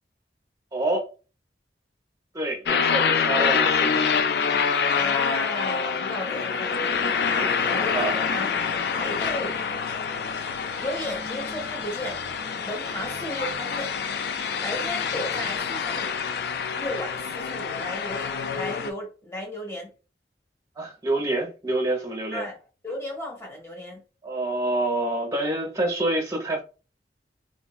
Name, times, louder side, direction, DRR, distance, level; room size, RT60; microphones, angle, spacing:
voice 1, 0.7-1.1 2.3-4.1 7.3-7.5 7.9-8.2 20.8-22.5 24.2-26.6, right 2 dB, 20° right, 0.9 m, -27 dB
sound 1, 2.7-18.9, left 6 dB, 65° left, 0.4 m, -26 dB
voice 2, 5.0-6.9 7.2-8.5 8.9-9.6 10.8-12.2 12.6-13.9 14.6-16.1 16.8-19.9 22.3-22.6 22.8-24.0, left 1 dB, 15° left, 1.1 m, -34 dB
4.0 x 2.5 x 2.3 m
head